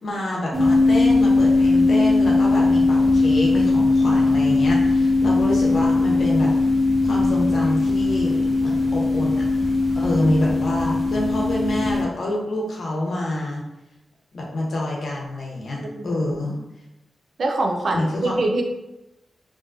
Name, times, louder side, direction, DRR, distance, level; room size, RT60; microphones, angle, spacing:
voice 1, 0.0-6.5 7.0-9.5 10.0-13.6 14.3-16.6 17.9-18.3, left 1 dB, 70° left, -3 dB, 0.8 m, -27 dB
sound 1, 0.5-12.0, left 3 dB, 5° right, 0.5 m, -19 dB
voice 2, 17.4-18.6, right 2 dB, 70° right, 2 dB, 0.4 m, -24 dB
2.6 x 2.2 x 2.5 m, 0.91 s
cardioid pair, 65°, 0 cm